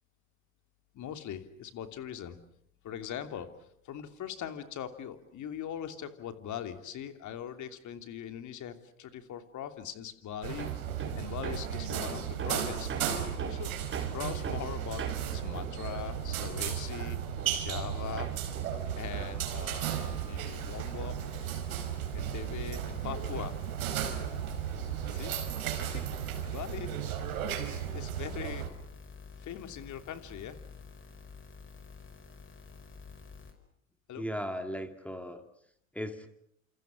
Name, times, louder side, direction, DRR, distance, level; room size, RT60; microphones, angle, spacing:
voice 1, 0.9-2.4 2.8-10.8 11.2-13.1 13.4-13.7 14.0-15.0 15.3-17.2 17.6-18.3 18.9-21.2 22.1-23.6 25.1-25.6 25.9-26.1 26.5-27.2 27.9-28.7 29.4-30.6 34.1-34.2, left 9 dB, 45° left, 8 dB, 3.0 m, -41 dB
sound 1, 10.4-28.7, right 9 dB, 75° right, 4.7 m, -35 dB
Hammer, 10.6-17.9 18.2-19.9, right 6 dB, 30° right, 4.7 m, -41 dB
sound 2, 19.9-33.5, left 5 dB, 25° left, 5.6 m, -50 dB
voice 2, 34.2-35.4 35.9-36.3, equal, 5° left, 7 dB, 2.5 m, -37 dB
28.5 x 28.0 x 6.4 m, 0.69 s
hypercardioid pair, 80°, 43 cm